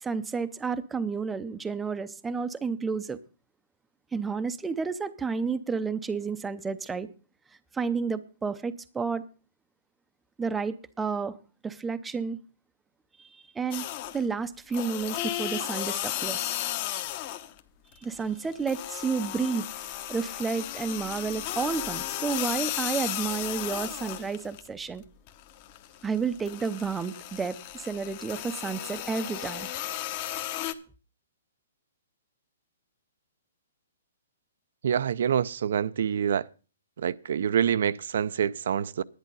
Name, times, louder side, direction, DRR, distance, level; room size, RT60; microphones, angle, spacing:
voice 1, 0.0-3.2 4.1-7.1 7.7-9.2 10.4-11.4 11.6-12.4 13.2-13.9 14.1-16.6 18.0-19.6 20.1-25.0 26.0-29.7, right 5 dB, 10° right, 0.6 m, -31 dB
sound 1, 13.7-14.3 14.7-17.6 17.9-24.7 25.0-30.7, left 13 dB, 35° left, 1.0 m, -34 dB
voice 2, 34.8-36.4 37.0-39.0, right 8 dB, 65° right, 0.5 m, -26 dB
11.0 x 10.0 x 5.4 m
hypercardioid pair, 160°, 0 cm